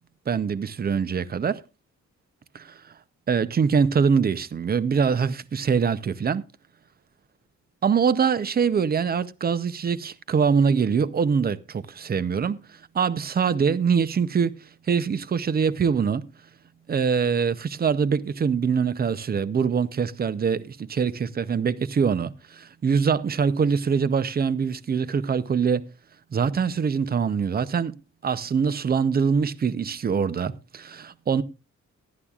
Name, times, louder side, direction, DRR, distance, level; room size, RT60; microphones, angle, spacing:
voice 1, 0.3-1.6 2.5-2.8 3.3-6.5 7.8-14.6 14.9-16.3 16.9-25.8 26.3-27.9 28.2-31.4, right 6 dB, 30° right, 0.6 m, -24 dB
18.0 x 11.5 x 2.4 m
wide cardioid pair, 165°, 30 cm